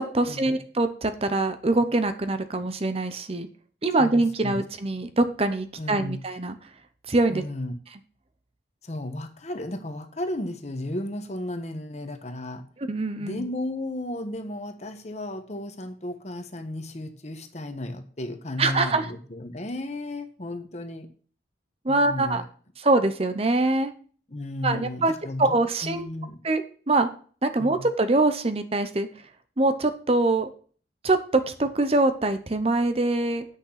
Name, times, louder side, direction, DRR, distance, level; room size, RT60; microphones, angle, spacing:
voice 1, 0.0-3.5 3.8-6.6 7.1-7.4 12.8-13.5 18.6-19.1 21.8-22.4 22.8-23.9 24.6-25.1 25.4-26.1 26.4-27.1 27.4-29.1 29.6-30.5 31.0-33.4, right 2 dB, 35° right, 9 dB, 0.8 m, -24 dB
voice 2, 4.0-4.6 5.8-6.2 7.3-7.7 8.8-12.6 13.2-21.1 21.9-22.4 24.3-25.6 25.8-26.4 27.6-27.8, left 1 dB, 40° left, 7 dB, 1.2 m, -34 dB
8.3 x 6.5 x 5.8 m, 0.43 s
head